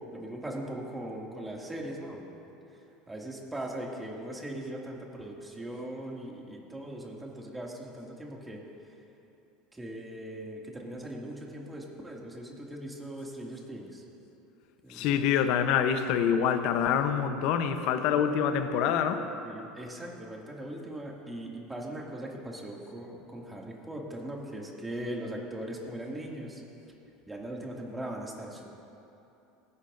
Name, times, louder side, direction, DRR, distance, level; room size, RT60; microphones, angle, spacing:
voice 1, 0.1-2.3 2.7-8.6 8.9-9.0 9.7-14.0 14.8-15.3 16.8-17.1 19.4-26.6 27.3-28.7, right 1 dB, 10° right, -1 dB, 2.3 m, -40 dB
voice 2, 14.9-19.3, left 8 dB, 65° left, 8 dB, 0.8 m, -26 dB
19.5 x 11.0 x 2.6 m, 2.9 s
hypercardioid pair, 90°, 0 cm